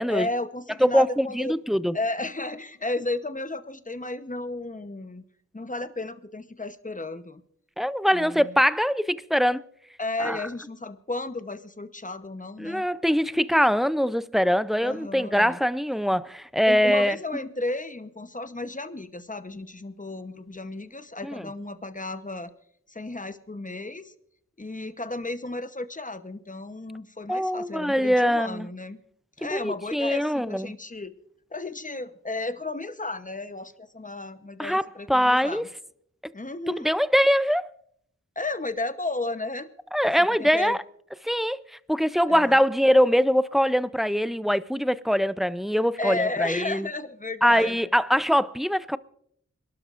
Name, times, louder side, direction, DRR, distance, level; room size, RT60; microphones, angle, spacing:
voice 1, 0.1-1.6 1.9-5.2 5.5-7.4 8.1-8.6 10.0-12.9 14.8-15.6 16.7-22.5 22.9-24.1 24.6-29.0 29.4-31.1 31.5-35.7 36.3-36.9 38.4-39.7 40.2-40.8 42.3-42.6 46.0-47.8, left 2 dB, 25° left, 0.9 m, -33 dB
voice 2, 0.8-2.0 7.8-9.6 10.2-10.4 12.6-17.2 21.2-21.4 27.3-28.7 29.4-30.7 34.6-34.8 35.1-35.6 36.7-37.7 39.9-40.8 41.2-41.6 41.9-46.9 47.4-49.0, equal, ahead, 0.4 m, -23 dB
26.5 x 12.0 x 2.5 m
wide cardioid pair, 40°, 30 cm